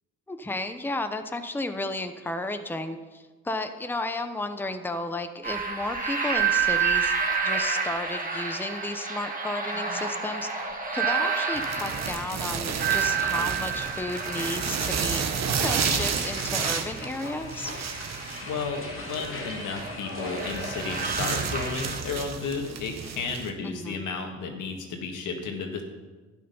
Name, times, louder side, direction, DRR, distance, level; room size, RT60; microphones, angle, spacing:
voice 1, 0.3-7.2 7.4-15.3 15.6-17.7 23.6-24.0, left 2 dB, 5° left, 8 dB, 0.8 m, -33 dB
sound 1, 5.4-22.0, right 6 dB, 30° right, 2.2 m, -30 dB
sound 2, 11.5-23.5, right 6 dB, 60° right, 1.4 m, -31 dB
sound 3, 14.0-21.4, left 3 dB, 45° left, 2.1 m, -42 dB
voice 2, 18.4-25.8, left 4 dB, 85° left, 3 dB, 2.0 m, -33 dB
12.5 x 9.5 x 5.6 m, 1.3 s
cardioid pair, 90°, 30 cm